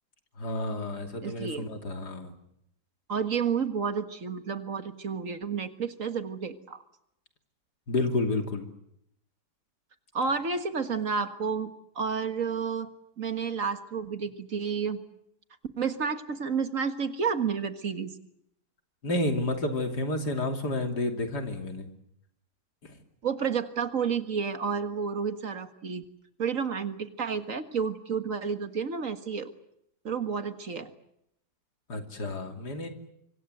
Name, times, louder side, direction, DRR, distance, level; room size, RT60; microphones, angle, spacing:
voice 1, 0.4-2.3 7.9-8.7 19.0-21.9 31.9-32.9, left 2 dB, 85° left, 5 dB, 3.5 m, -30 dB
voice 2, 1.2-1.7 3.1-6.8 10.1-12.9 13.2-15.0 15.8-18.1 23.2-26.0 26.4-29.5 30.0-30.9, right 6 dB, 55° right, 9 dB, 2.0 m, -30 dB
25.5 x 25.0 x 8.0 m, 0.77 s
omnidirectional pair, 1.7 m